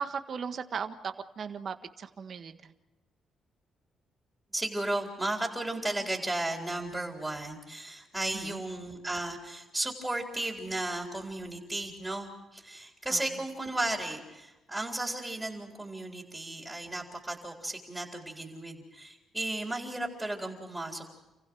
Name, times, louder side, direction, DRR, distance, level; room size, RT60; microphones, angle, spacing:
voice 1, 0.0-2.7 8.3-8.6 13.1-13.2, right 6 dB, 50° right, 8 dB, 1.6 m, -37 dB
voice 2, 4.5-21.1, right 1 dB, 10° right, 1 dB, 3.7 m, -34 dB
29.5 x 15.5 x 6.3 m, 1.0 s
cardioid pair, 90°, 0 cm